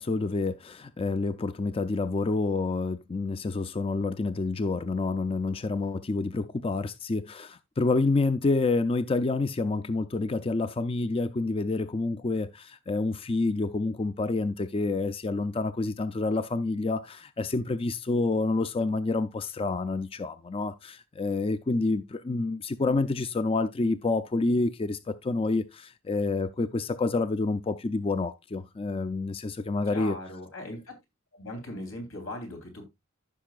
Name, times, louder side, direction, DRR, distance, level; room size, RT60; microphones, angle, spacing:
voice 1, 0.0-30.2, left 3 dB, 30° left, 0.4 m, -28 dB
voice 2, 29.9-30.8 31.3-32.9, left 1 dB, 90° left, 3.3 m, -39 dB
14.5 x 5.9 x 2.4 m
head